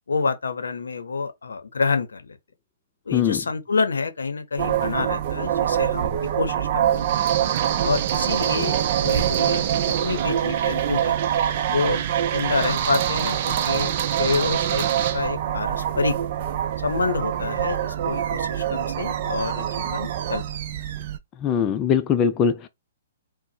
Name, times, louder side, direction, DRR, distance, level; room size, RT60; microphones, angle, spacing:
voice 1, 0.1-2.4 3.1-6.1 6.4-7.3 7.8-11.2 11.7-12.0 12.3-13.9 14.2-16.2 16.8-20.6, left 4 dB, 85° left, 0.7 m, -28 dB
sound 1, 4.6-21.2, right 10 dB, 50° right, 0.5 m, -24 dB
voice 2, 21.4-22.7, left 7 dB, 25° left, 0.4 m, -21 dB
4.2 x 2.1 x 2.7 m
hypercardioid pair, 130°, 0 cm